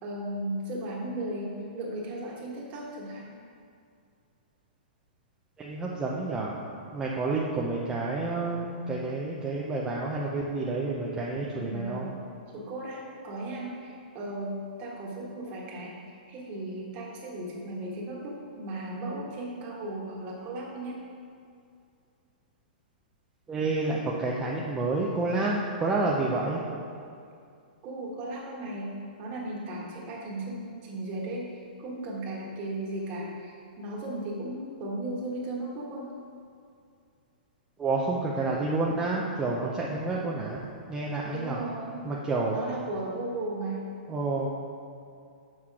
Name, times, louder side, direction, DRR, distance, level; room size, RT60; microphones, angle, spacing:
voice 1, 0.0-3.2 11.5-12.1 12.5-14.5 14.8-21.0 27.8-28.9 29.2-36.1 41.3-42.0 42.5-43.8, right 1 dB, 30° right, -3 dB, 1.5 m, -36 dB
voice 2, 5.6-6.6 6.9-12.1 23.5-26.6 37.8-40.6 40.9-41.6 42.0-42.6 44.1-44.5, right 3 dB, 10° right, -4 dB, 0.6 m, -29 dB
6.1 x 5.9 x 4.8 m, 2.4 s
hypercardioid pair, 155°, 5 cm